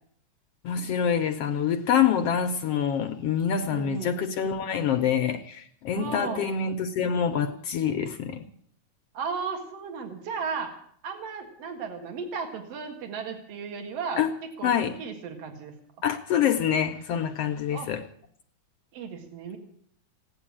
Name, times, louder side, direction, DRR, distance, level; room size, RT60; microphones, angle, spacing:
voice 1, 0.6-8.4 14.2-14.3 14.6-14.9 16.0-18.0, left 8 dB, 70° left, 1.5 m, -26 dB
voice 2, 3.7-4.1 5.9-6.5 9.1-14.3 14.6-15.8 17.7-17.9 18.9-19.6, right 5 dB, 55° right, 2.8 m, -35 dB
16.5 x 10.0 x 8.6 m
omnidirectional pair, 3.5 m